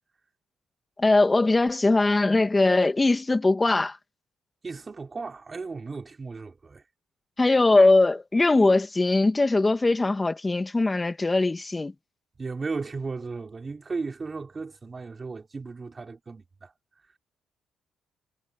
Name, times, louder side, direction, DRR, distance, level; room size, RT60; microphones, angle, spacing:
voice 1, 1.0-4.0 7.4-11.9, left 2 dB, 20° left, 2.3 m, -21 dB
voice 2, 4.6-6.8 12.4-16.7, right 4 dB, 30° right, 4.1 m, -35 dB
cardioid pair, 90°, 0 cm